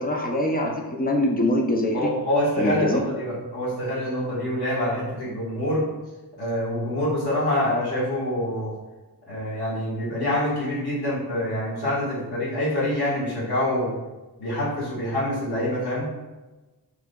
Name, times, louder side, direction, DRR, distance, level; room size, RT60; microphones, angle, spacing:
voice 1, 0.0-2.1 2.6-3.0, left 1 dB, 20° left, 1 dB, 0.4 m, -24 dB
voice 2, 1.9-5.9 6.4-8.7 9.3-13.9 14.4-16.1, left 1 dB, 60° left, -9 dB, 1.5 m, -26 dB
4.9 x 3.4 x 2.2 m, 1.1 s
wide cardioid pair, 170°, 43 cm